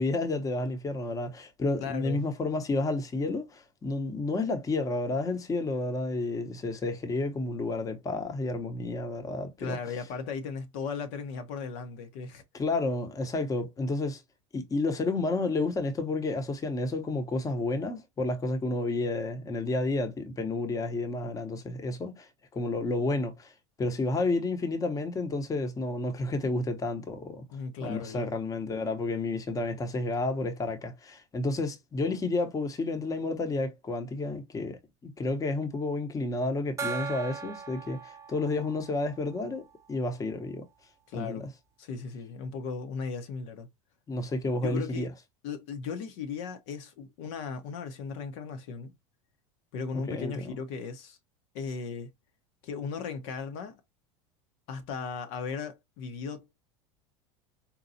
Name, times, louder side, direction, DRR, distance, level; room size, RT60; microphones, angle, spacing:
voice 1, 0.0-9.8 12.5-14.2 14.5-23.5 23.8-27.4 27.8-40.7 41.1-41.5 44.1-45.1 49.9-50.5, left 2 dB, 20° left, 0.9 m, -31 dB
voice 2, 1.8-2.3 9.6-12.4 27.5-28.4 41.1-41.5 41.8-43.7 44.6-45.1 45.4-48.9 49.7-51.2 51.5-52.1 52.6-53.8 54.7-56.6, left 5 dB, 65° left, 0.8 m, -37 dB
Gong, 36.8-40.0, right 5 dB, 20° right, 0.5 m, -39 dB
4.2 x 2.2 x 2.6 m
hypercardioid pair, 100°, 16 cm